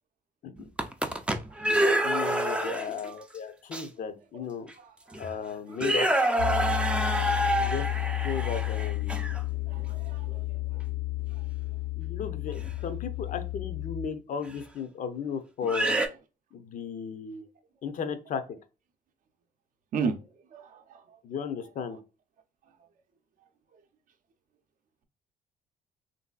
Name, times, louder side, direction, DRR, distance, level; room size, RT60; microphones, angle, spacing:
sound 1, 0.6-3.1 3.7-3.8 4.7-4.8 5.1-5.3 5.7-9.4 12.6-12.7 14.5-14.6 15.6-16.1, right 1 dB, 5° right, 0.4 m, -27 dB
voice 1, 2.0-4.7 5.2-6.1 7.6-7.9 8.2-9.5 12.0-16.0 16.5-17.4 17.8-18.4 21.2-22.0, left 6 dB, 55° left, 9 dB, 0.6 m, -35 dB
voice 2, 4.8-5.2 9.7-10.4 10.7-10.8 19.9-20.2 20.5-21.2, right 5 dB, 55° right, 6 dB, 0.6 m, -35 dB
sound 2, 6.4-14.1, left 19 dB, 90° left, 1.2 m, -32 dB
3.1 x 2.6 x 2.3 m, 0.31 s
cardioid pair, 100°, 17 cm